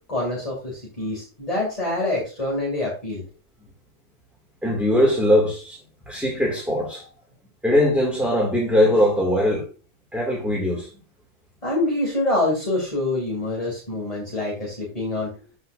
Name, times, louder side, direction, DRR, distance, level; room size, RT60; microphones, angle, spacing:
voice 1, 0.1-3.2 11.6-15.3, left 2 dB, 30° left, 3.0 m, -26 dB
voice 2, 4.6-5.8 6.1-7.1 7.6-9.7 10.1-10.9, left 1 dB, ahead, 2.3 m, -20 dB
13.5 x 5.5 x 2.6 m
omnidirectional pair, 1.2 m